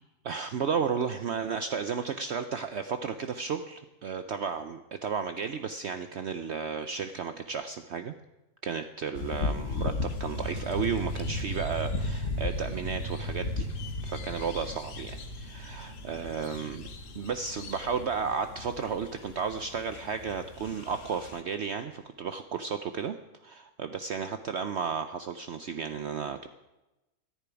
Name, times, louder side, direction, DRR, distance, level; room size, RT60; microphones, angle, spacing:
voice 1, 0.2-8.1 8.6-13.7 14.0-16.8 17.1-23.2 23.4-26.5, right 6 dB, 60° right, 9 dB, 0.8 m, -33 dB
sound 1, 9.1-21.4, left 4 dB, 60° left, 1.4 m, -37 dB
sound 2, 9.9-20.9, right 1 dB, 30° right, 2.3 m, -39 dB
11.0 x 10.0 x 9.8 m, 1.0 s
omnidirectional pair, 1.6 m